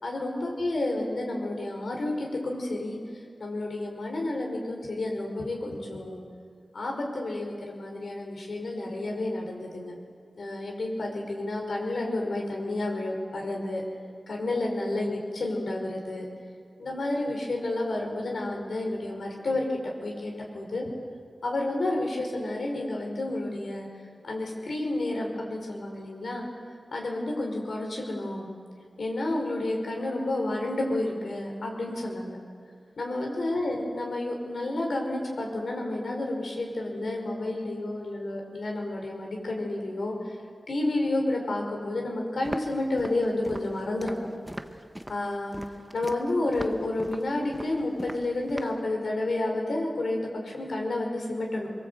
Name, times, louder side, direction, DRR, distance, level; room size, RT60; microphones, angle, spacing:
voice 1, 0.0-3.0 3.4-6.2 6.7-10.0 10.4-13.8 14.3-16.2 16.8-20.9 21.4-23.9 24.2-26.5 26.9-28.5 29.0-32.4 33.0-40.3 40.7-44.3 45.1-45.6 45.9-51.7, left 2 dB, 80° left, 1 dB, 5.0 m, -30 dB
Walk footsteps, 42.4-48.8, equal, 10° right, 1.1 m, -40 dB
23.0 x 23.0 x 8.1 m, 2.2 s
wide cardioid pair, 105°, 0 cm